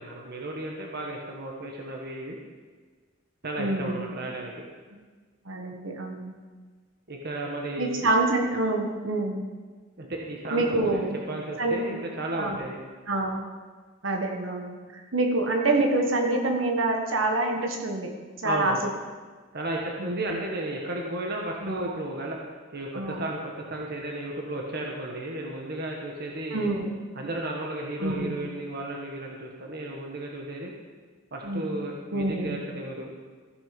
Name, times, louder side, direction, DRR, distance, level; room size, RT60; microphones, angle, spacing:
voice 1, 0.0-2.4 3.4-4.5 7.1-8.1 10.0-12.8 18.4-18.8 19.5-22.4 22.7-26.7 27.1-30.7 31.3-33.2, right 1 dB, 50° right, -1 dB, 1.3 m, -34 dB
voice 2, 3.6-4.0 5.4-6.3 7.8-9.4 10.5-11.2 11.6-12.0 12.4-12.6 13.1-13.5 14.0-18.1 18.4-18.8 20.0-20.3 21.6-21.9 22.9-23.2 26.5-27.0 28.0-28.4 31.4-31.8 32.1-32.6, right 2 dB, 65° right, 2 dB, 1.5 m, -27 dB
15.0 x 7.2 x 5.2 m, 1.5 s
head